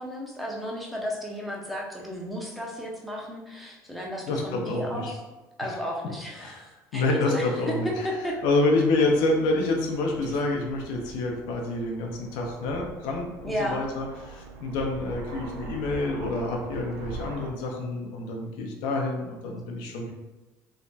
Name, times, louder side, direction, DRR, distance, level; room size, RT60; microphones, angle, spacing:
voice 1, 0.0-5.2 5.6-7.8 8.0-8.4 13.4-13.8, equal, ahead, -3 dB, 0.8 m, -33 dB
voice 2, 4.2-5.1 6.4-6.6 6.9-8.1 8.4-20.1, left 2 dB, 70° left, 1 dB, 0.5 m, -27 dB
Aircraft, 8.2-17.5, right 4 dB, 85° right, 0.3 m, -43 dB
3.2 x 2.1 x 2.6 m, 1.2 s
hypercardioid pair, 70°, 9 cm